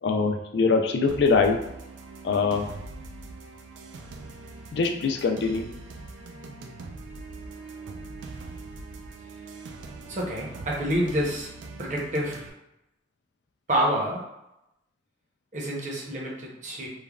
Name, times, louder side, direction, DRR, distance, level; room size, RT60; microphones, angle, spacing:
voice 1, 0.0-1.6 2.2-2.7 4.7-5.7, left 4 dB, 65° left, 4 dB, 0.3 m, -23 dB
sound 1, 1.1-12.5, right 3 dB, 85° right, 0.3 m, -42 dB
voice 2, 10.1-11.5 11.8-12.5 13.7-14.2 15.5-16.9, equal, 40° right, -2 dB, 0.7 m, -28 dB
3.2 x 2.0 x 2.3 m, 0.88 s
head